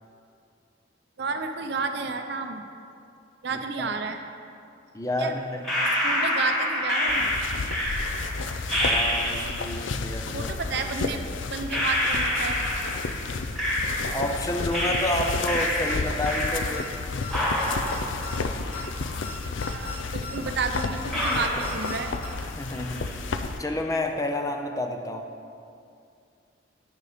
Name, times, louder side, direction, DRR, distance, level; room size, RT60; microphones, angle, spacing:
voice 1, 1.2-2.6 3.4-4.2 5.2-5.4 6.0-7.3 10.3-12.6 19.7-22.1, right 4 dB, 60° right, 6 dB, 0.6 m, -31 dB
voice 2, 4.9-5.7 8.8-10.5 14.1-16.9 22.4-23.1 23.6-25.3, left 1 dB, 20° left, 4 dB, 0.5 m, -29 dB
sound 1, 5.6-9.8 10.9-11.0 11.7-14.4 14.7-17.0 17.3-19.4 19.7-19.8 20.5-20.6 21.1-22.4 22.7-23.3, left 1 dB, ahead, 2.0 m, -28 dB
sound 2, 7.1-23.6, left 4 dB, 80° left, 0.5 m, -32 dB
sound 3, 14.3-14.5 14.7-14.8 15.2-15.3 15.6-15.9 16.2-16.5 16.7-16.8 17.2-17.3 17.6-18.0 18.2-18.5 18.7-18.8 19.2-19.3 19.6-20.0 20.2-20.5 20.7-20.8 21.2-21.3 21.6-22.0 22.2-22.3, left 4 dB, 45° left, 2.2 m, -38 dB
9.8 x 6.7 x 5.1 m, 2.5 s
head